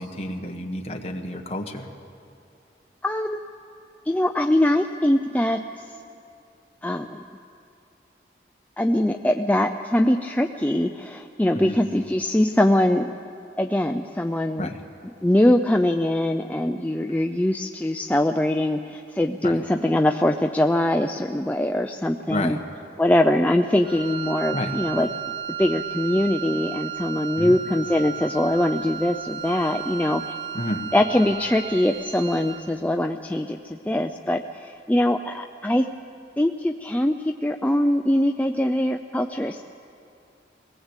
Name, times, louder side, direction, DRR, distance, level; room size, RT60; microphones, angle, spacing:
voice 1, 0.0-1.9 11.5-11.8 14.6-14.8 19.4-19.6 22.3-22.6 24.5-24.8 27.4-27.6 30.5-30.8, left 1 dB, 35° left, 2 dB, 1.5 m, -30 dB
voice 2, 3.0-3.4 4.1-5.6 6.8-7.2 8.8-13.1 13.6-14.7 15.2-22.6 23.0-25.1 25.6-30.2 30.9-35.9 36.4-39.6, left 1 dB, 10° left, 4 dB, 0.4 m, -22 dB
Wind instrument woodwind instrument, 23.8-32.7, right 8 dB, 25° right, 1.1 m, -34 dB
21.5 x 18.5 x 8.2 m, 2.5 s
head